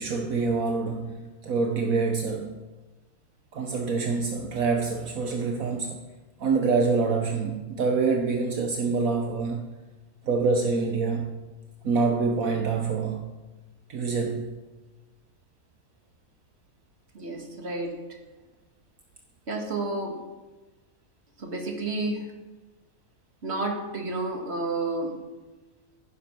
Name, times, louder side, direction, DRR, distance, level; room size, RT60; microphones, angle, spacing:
voice 1, 0.0-2.6 3.5-6.0 6.4-9.7 10.2-11.4 11.8-13.3 13.9-14.6, right 4 dB, 70° right, 4 dB, 1.5 m, -26 dB
voice 2, 17.1-18.2 19.5-20.3 21.4-22.3 23.4-25.2, right 2 dB, 45° right, 3 dB, 2.2 m, -31 dB
15.5 x 10.5 x 6.2 m, 1.2 s
omnidirectional pair, 1.5 m